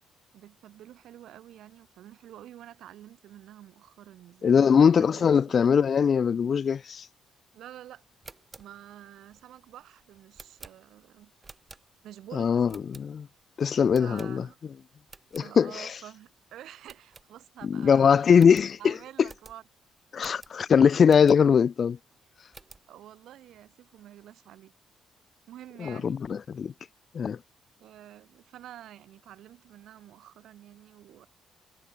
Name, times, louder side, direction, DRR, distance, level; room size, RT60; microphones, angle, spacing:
voice 1, 0.3-5.6 7.5-8.0 8.6-11.3 12.0-12.8 14.0-14.6 15.4-18.5 18.8-19.6 22.9-24.7 25.5-26.2 27.8-31.3, right 12 dB, 75° right, 6.8 m, -48 dB
voice 2, 4.4-7.0 12.4-13.3 13.6-14.4 15.3-15.7 17.6-18.9 20.1-22.0 25.8-26.7 27.1-27.4, left 7 dB, 50° left, 0.6 m, -21 dB
sound 1, 8.1-12.2 12.7-13.4 13.9-14.7 15.0-15.5 15.9-16.0 16.3-16.4 16.8-17.7 18.0-18.1 18.3-21.6 22.1-22.9, right 3 dB, 25° right, 2.9 m, -52 dB
cardioid pair, 90°, 0 cm